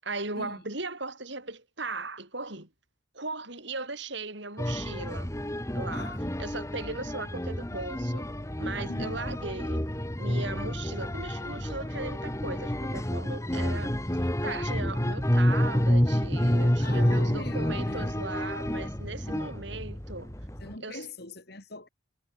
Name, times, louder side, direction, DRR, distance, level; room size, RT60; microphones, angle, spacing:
voice 1, 0.0-2.7 3.1-5.3 5.7-6.1 6.4-8.3 8.6-9.8 10.2-20.3 20.8-21.0, right 3 dB, 60° right, 7.1 m, -38 dB
sound 1, 4.6-20.7, equal, 15° left, 1.6 m, -29 dB
voice 2, 5.9-6.4 8.9-9.2 16.8-18.3 20.6-21.9, left 2 dB, 50° left, 5.2 m, -43 dB
head